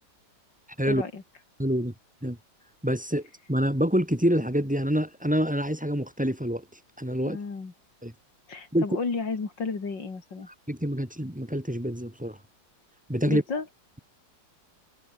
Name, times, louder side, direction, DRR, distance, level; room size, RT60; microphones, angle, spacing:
voice 1, 0.9-1.2 7.2-7.7 8.5-10.5 13.3-13.7, left 4 dB, 60° left, 3.9 m, -32 dB
voice 2, 1.6-1.9 2.2-2.4 2.8-6.6 7.0-7.4 8.0-8.1 8.7-8.9 10.7-12.4 13.1-13.4, equal, 5° right, 2.6 m, -26 dB
omnidirectional pair, 2.2 m